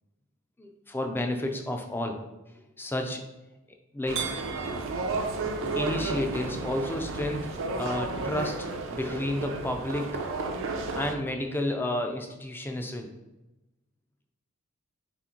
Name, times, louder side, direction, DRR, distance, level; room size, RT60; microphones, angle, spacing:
voice 1, 0.6-2.2 2.8-3.2 3.9-4.2 5.7-10.2 11.0-13.1, left 1 dB, 10° left, 4 dB, 0.4 m, -31 dB
sound 1, 4.1-11.1, right 3 dB, 60° right, 0.5 m, -32 dB
4.1 x 2.9 x 3.7 m, 0.99 s
head